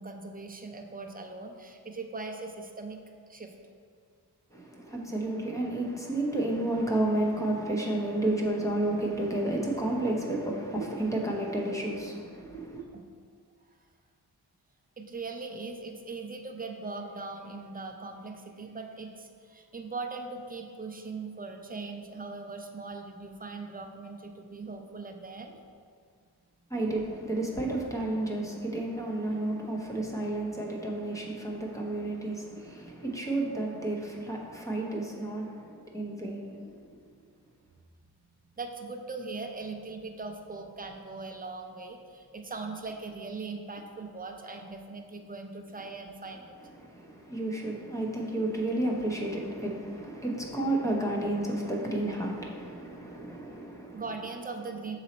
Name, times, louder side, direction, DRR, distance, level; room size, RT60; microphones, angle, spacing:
voice 1, 0.0-3.0 3.3-3.5 12.9-13.1 15.0-25.6 38.6-46.5 48.8-49.0 53.9-55.0, right 3 dB, 25° right, 4 dB, 0.4 m, -40 dB
voice 2, 4.5-12.8 26.7-36.8 46.9-54.0, right 1 dB, 10° left, -2 dB, 0.7 m, -31 dB
6.2 x 4.0 x 4.2 m, 2.1 s
wide cardioid pair, 155°, 39 cm